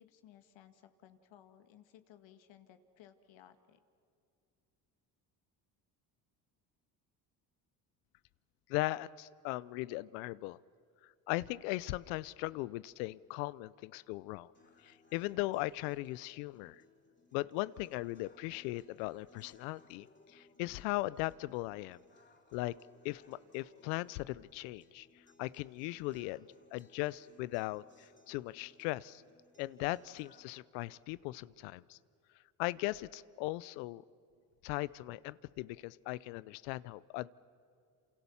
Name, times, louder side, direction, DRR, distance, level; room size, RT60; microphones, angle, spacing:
voice 1, 0.0-3.8, left 10 dB, 65° left, 9 dB, 2.0 m, -60 dB
voice 2, 8.7-10.6 11.0-14.5 14.8-16.8 17.3-22.0 22.5-22.7 23.0-25.1 25.4-29.2 29.6-32.0 32.6-34.0 34.6-37.3, left 19 dB, 85° left, 21 dB, 0.7 m, -38 dB
sound 1, 14.5-30.6, left 3 dB, 20° left, 4.5 m, -65 dB
28.0 x 28.0 x 7.1 m, 2.5 s
supercardioid pair, 70°, 48 cm